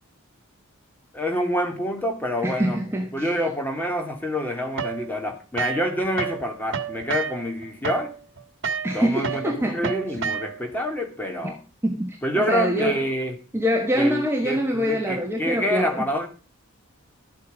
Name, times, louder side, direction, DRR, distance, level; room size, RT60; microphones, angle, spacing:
voice 1, 1.1-2.8 3.1-8.1 8.9-11.6 12.2-13.4 13.9-16.3, equal, 10° left, 2.3 m, -27 dB
voice 2, 2.4-3.3 8.8-9.9 11.8-13.0 13.5-16.1, equal, 10° right, 1.3 m, -25 dB
sound 1, 4.8-6.4 6.7-10.8, right 6 dB, 60° right, 1.5 m, -30 dB
12.5 x 8.3 x 5.1 m
head